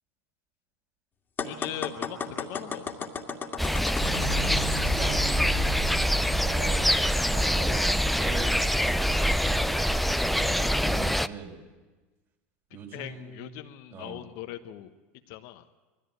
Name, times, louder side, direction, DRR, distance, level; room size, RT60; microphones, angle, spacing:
voice 1, 1.4-2.8 12.9-14.9 15.3-15.7, left 13 dB, 65° left, 8 dB, 1.2 m, -40 dB
sound 1, 1.4-5.6, left 5 dB, 30° left, 2.2 m, -35 dB
sound 2, 3.6-11.3, equal, ahead, 0.5 m, -25 dB
sound 3, 4.0-9.5, right 3 dB, 90° right, 0.8 m, -39 dB
voice 2, 4.9-7.0 7.3-7.8 8.2-11.6 12.7-13.6 13.9-14.3, right 4 dB, 45° right, 1 dB, 5.9 m, -41 dB
20.0 x 14.0 x 9.2 m, 1.2 s
hypercardioid pair, 85°, 7 cm